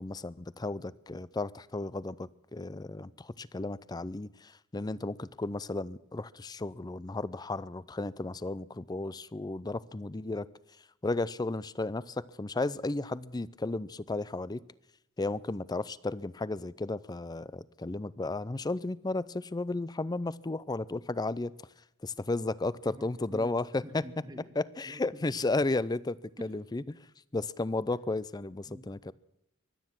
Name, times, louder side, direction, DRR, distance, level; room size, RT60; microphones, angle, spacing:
voice 1, 0.0-10.5 11.0-14.6 15.2-21.5 22.0-24.0 24.6-27.0 27.3-29.1, left 2 dB, 20° left, 0.5 m, -34 dB
voice 2, 23.0-23.5 23.8-24.5 24.9-25.0 26.4-26.5 28.7-28.8, equal, 20° right, 1.6 m, -47 dB
24.0 x 9.5 x 6.0 m
head